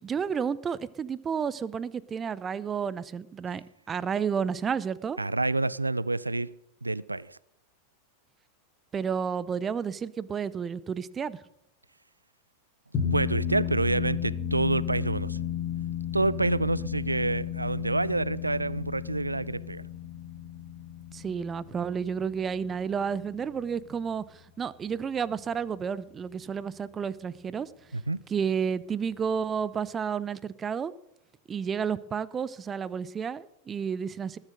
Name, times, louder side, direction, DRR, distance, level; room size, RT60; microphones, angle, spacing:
voice 1, 0.0-5.2 8.9-11.4 21.1-27.7 28.3-30.9 31.5-34.4, right 7 dB, 20° right, 0.6 m, -31 dB
voice 2, 5.2-6.5 6.8-7.4 13.1-15.4 16.1-19.8 27.9-28.2, right 2 dB, 85° right, 0.4 m, -28 dB
sound 1, 12.9-23.6, left 9 dB, 30° left, 3.7 m, -34 dB
20.0 x 7.4 x 6.4 m
figure-of-eight pair, 90°, 0 cm